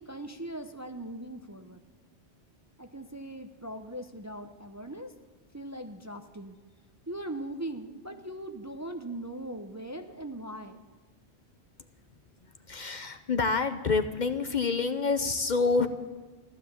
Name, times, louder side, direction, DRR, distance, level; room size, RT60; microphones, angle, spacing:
voice 1, 0.0-1.8 2.8-5.1 5.5-6.6 7.1-10.9, right 1 dB, 20° right, 6 dB, 0.6 m, -40 dB
voice 2, 12.7-15.9, left 4 dB, 50° left, 9 dB, 0.8 m, -27 dB
15.0 x 12.5 x 7.3 m, 1.3 s
omnidirectional pair, 1.1 m